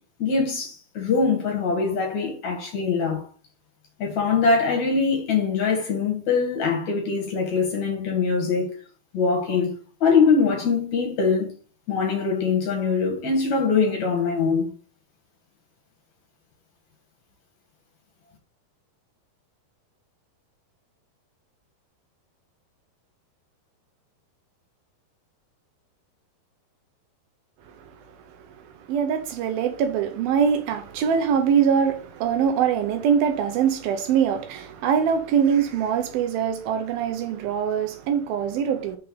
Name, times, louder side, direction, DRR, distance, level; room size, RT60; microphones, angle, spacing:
voice 1, 0.2-3.2 4.0-8.7 9.1-9.7 10.0-11.5 11.9-14.7, left 5 dB, 55° left, 2.4 m, -23 dB
voice 2, 28.8-39.0, right 7 dB, 75° right, 2.6 m, -23 dB
6.2 x 4.5 x 6.4 m
omnidirectional pair, 4.5 m